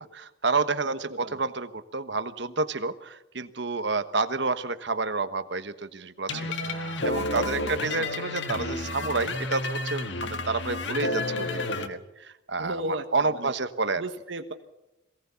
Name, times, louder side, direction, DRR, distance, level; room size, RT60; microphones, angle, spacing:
voice 1, 0.0-14.0, right 3 dB, 65° right, 11 dB, 1.2 m, -30 dB
voice 2, 0.9-1.4 6.3-7.4 8.0-8.1 12.6-13.5 14.0-14.5, right 1 dB, 80° right, 6 dB, 1.4 m, -37 dB
sound 1, 6.3-11.9, left 2 dB, 70° left, 1.7 m, -31 dB
23.0 x 18.0 x 7.1 m, 0.94 s
head